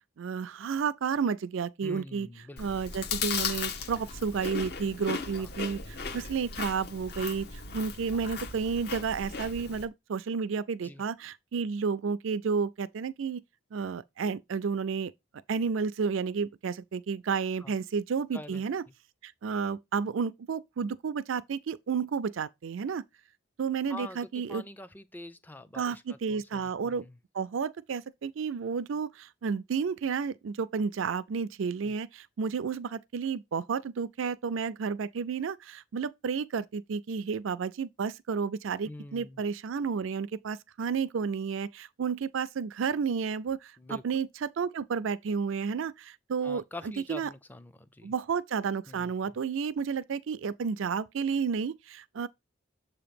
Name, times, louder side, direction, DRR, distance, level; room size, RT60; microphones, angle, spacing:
voice 1, 0.2-2.3 2.6-13.4 13.7-15.1 15.5-18.8 19.2-23.0 23.6-24.6 25.7-27.0 27.3-46.6 47.1-47.3 48.0-52.3, right 5 dB, 80° right, 0.4 m, -31 dB
voice 2, 1.8-2.6 5.4-5.5 10.8-11.0 17.6-17.7 18.3-18.6 23.9-27.1 31.8-31.9 38.8-39.4 43.8-44.0 46.4-48.1 48.9-49.1, left 2 dB, 10° left, 0.4 m, -45 dB
Chewing mastication, 2.6-9.9, left 5 dB, 55° left, 0.8 m, -36 dB
7.3 x 2.9 x 5.1 m
head